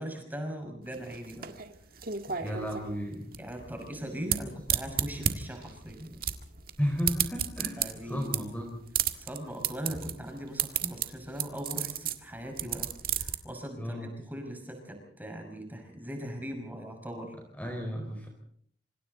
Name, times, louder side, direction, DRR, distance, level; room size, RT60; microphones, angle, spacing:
voice 1, 0.0-1.5 2.4-2.6 3.4-6.2 7.8-8.4 9.2-17.3, equal, 10° right, 3 dB, 5.9 m, -40 dB
sound 1, 0.9-13.4, right 9 dB, 55° right, 1.9 m, -33 dB
voice 2, 2.3-3.3 6.8-8.8 13.8-14.1 17.6-18.3, equal, 10° left, 2 dB, 4.6 m, -33 dB
26.5 x 26.5 x 4.1 m, 0.63 s
head